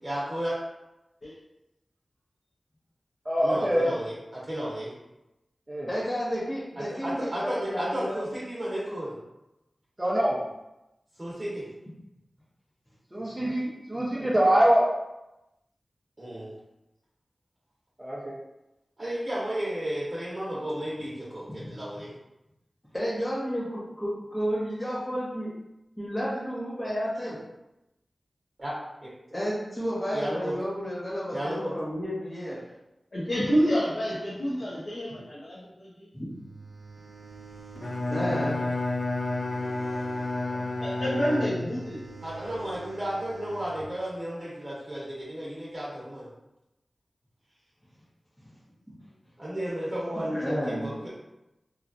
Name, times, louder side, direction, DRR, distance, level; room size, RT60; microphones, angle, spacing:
voice 1, 0.0-0.6 3.4-4.9 6.8-9.1 11.2-11.7 14.2-14.3 16.2-16.5 19.0-22.1 28.6-28.7 29.0-29.1 30.1-30.5 31.3-31.7 42.2-46.3 49.4-51.1, equal, 40° right, -8 dB, 0.9 m, -33 dB
voice 2, 3.3-3.9 5.7-5.9 10.0-10.4 13.1-14.9 18.0-18.3, right 1 dB, 20° right, -6 dB, 0.6 m, -24 dB
voice 3, 5.9-8.2 21.6-21.7 22.9-25.5 26.0-27.4 29.3-32.6 36.1-36.3 38.1-38.6 50.4-50.9, equal, 20° left, -9 dB, 0.9 m, -31 dB
voice 4, 33.1-36.1 40.5-42.0, equal, 75° left, -9 dB, 0.8 m, -28 dB
sound 1, 36.3-43.9, right 4 dB, 75° right, 0.3 m, -46 dB
Bowed string instrument, 37.8-42.0, left 2 dB, 50° left, 0.3 m, -30 dB
3.0 x 2.4 x 2.5 m, 0.93 s
cardioid pair, 45°, 0 cm